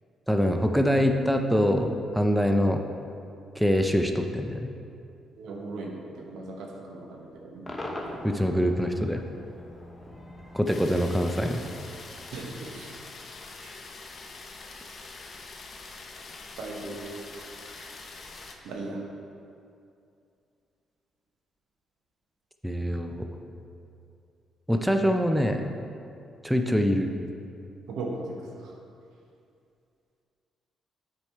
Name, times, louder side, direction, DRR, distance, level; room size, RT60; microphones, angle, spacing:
voice 1, 0.3-2.8 3.6-4.7 8.2-9.2 10.5-11.6 22.6-23.3 24.7-25.6 26.4-27.1, equal, 5° right, 5 dB, 0.5 m, -24 dB
voice 2, 5.4-8.6 12.3-12.9 13.6-13.7 16.6-17.1 18.6-19.0 27.9-28.3, right 3 dB, 85° right, 0 dB, 1.1 m, -38 dB
Cheering / Crowd / Fireworks, 7.7-12.9, left 1 dB, 20° left, 1.0 m, -43 dB
sound 1, 10.7-18.5, left 3 dB, 45° left, 0.8 m, -44 dB
8.3 x 4.9 x 4.5 m, 2.5 s
cardioid pair, 90°, 0 cm